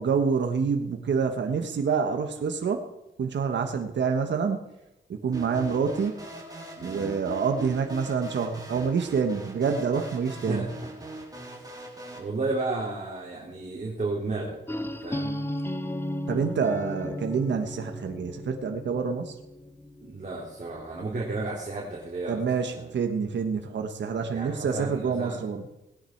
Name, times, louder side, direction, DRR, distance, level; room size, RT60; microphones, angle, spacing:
voice 1, 0.0-2.8 3.2-4.6 5.1-6.1 6.8-10.7 16.3-19.3 22.3-25.6, right 5 dB, 65° right, 5 dB, 1.4 m, -27 dB
sound 1, 5.3-12.2, right 2 dB, 20° right, 3.7 m, -41 dB
voice 2, 6.8-7.1 10.4-10.7 11.5-11.7 12.1-15.4 20.0-22.9 24.3-25.4, right 3 dB, 40° right, -4 dB, 3.4 m, -33 dB
sound 2, 14.7-20.4, left 1 dB, 10° left, 1.0 m, -35 dB
18.5 x 10.5 x 4.6 m, 0.92 s
cardioid pair, 75°, 20 cm